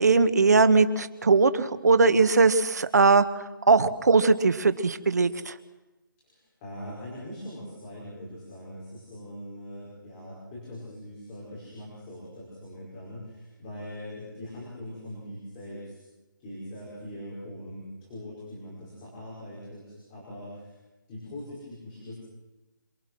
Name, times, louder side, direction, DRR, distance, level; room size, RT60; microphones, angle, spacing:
voice 1, 0.0-3.2 3.7-5.5, right 4 dB, 50° right, 11 dB, 1.5 m, -20 dB
voice 2, 6.2-16.0 16.4-20.7 21.1-22.2, left 1 dB, 10° left, -7 dB, 5.3 m, -41 dB
28.0 x 21.5 x 6.2 m, 1.1 s
hypercardioid pair, 180°, 11 cm